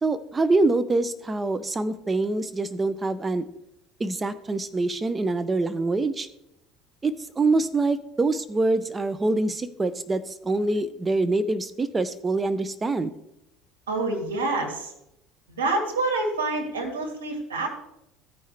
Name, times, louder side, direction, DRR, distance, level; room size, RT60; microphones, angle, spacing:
voice 1, 0.0-3.4 4.0-6.3 7.0-13.1, right 2 dB, 25° right, 13 dB, 0.5 m, -25 dB
voice 2, 13.9-14.9 15.5-17.7, right 2 dB, 85° right, 1 dB, 1.8 m, -27 dB
14.0 x 5.4 x 3.3 m, 0.84 s
hypercardioid pair, 70°, 0 cm